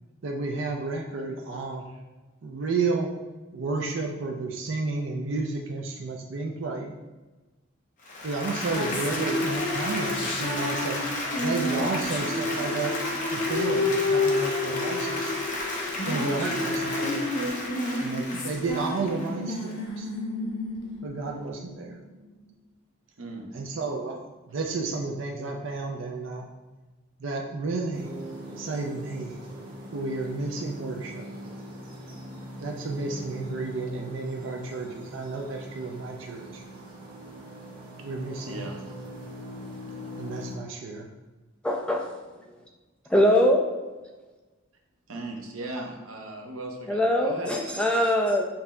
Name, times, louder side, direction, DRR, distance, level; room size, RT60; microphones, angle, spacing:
voice 1, 0.2-1.8 2.4-3.1 3.5-6.9 8.2-11.0 11.4-12.9 13.3-15.3 16.1-17.3 18.0-20.1 21.0-22.0 23.5-24.2 24.5-26.5 27.2-28.1 28.6-29.4 29.9-31.3 32.6-36.6 38.0-38.6 40.2-41.1, right 3 dB, 65° right, 1 dB, 0.4 m, -31 dB
Applause, 8.0-19.7, left 2 dB, 40° left, 0.8 m, -33 dB
sound 1, 8.4-22.1, left 2 dB, 90° left, 1.0 m, -30 dB
voice 2, 23.2-23.5 38.4-38.8 45.1-47.6, right 2 dB, 80° right, 1 dB, 0.8 m, -37 dB
sound 2, 27.9-40.6, equal, 45° right, 1.3 m, -42 dB
voice 3, 41.6-42.1 43.1-43.7 46.9-48.5, left 1 dB, 5° left, 1 dB, 0.3 m, -22 dB
7.3 x 2.7 x 2.3 m, 1.2 s
head